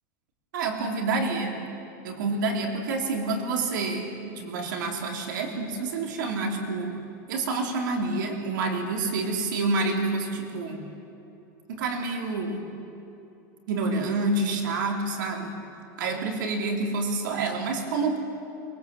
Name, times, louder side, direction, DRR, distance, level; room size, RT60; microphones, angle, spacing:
voice 1, 0.5-1.7 2.0-7.0 7.3-10.8 11.7-12.7 13.7-15.6 16.0-18.2, right 3 dB, 85° right, 2 dB, 3.5 m, -28 dB
23.5 x 21.5 x 7.7 m, 2.8 s
supercardioid pair, 175°, 10 cm